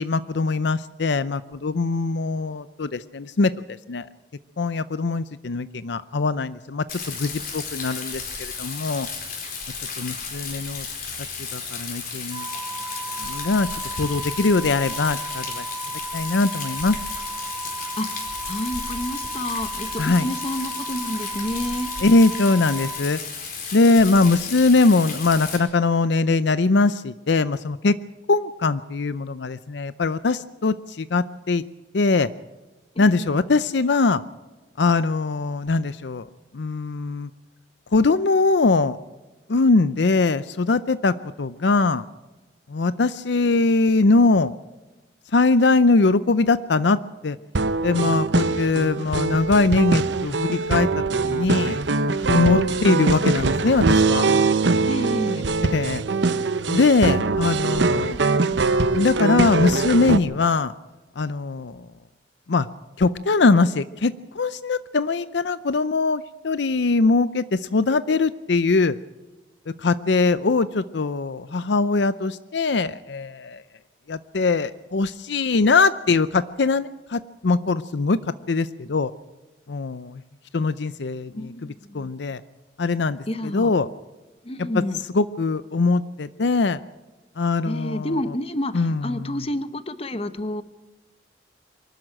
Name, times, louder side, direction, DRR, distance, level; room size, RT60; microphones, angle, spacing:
voice 1, 0.0-3.5 3.9-4.1 4.6-9.1 10.0-10.9 11.4-12.5 13.2-15.6 16.1-17.0 20.0-20.3 22.0-23.2 23.7-27.9 28.3-31.6 31.9-32.3 33.0-34.2 34.8-36.3 36.5-37.3 37.9-39.0 39.5-42.1 42.7-44.5 45.3-47.4 47.8-51.8 52.3-54.3 55.7-56.0 56.7-58.2 58.9-60.7 61.2-61.8 62.5-62.7 63.0-69.0 69.8-73.6 74.1-78.2 78.5-79.1 79.7-80.2 80.5-81.5 81.9-82.4 82.8-83.2 83.5-83.9 84.6-84.7 85.1-86.8 87.4-88.1 88.7-89.4, left 3 dB, 70° left, 14 dB, 0.6 m, -21 dB
Rain, 6.9-25.6, left 5 dB, 50° left, 4.5 m, -34 dB
sound 1, 12.3-23.0, right 3 dB, 15° right, 2.3 m, -35 dB
voice 2, 18.0-21.9 32.9-33.4 52.3-52.8 54.9-55.5 81.3-82.1 83.3-83.7 84.4-85.0 87.6-90.6, left 1 dB, 30° left, 11 dB, 1.0 m, -30 dB
sound 2, 47.5-60.2, right 3 dB, 75° right, 0.8 m, -22 dB
24.0 x 12.5 x 8.9 m, 1.1 s
head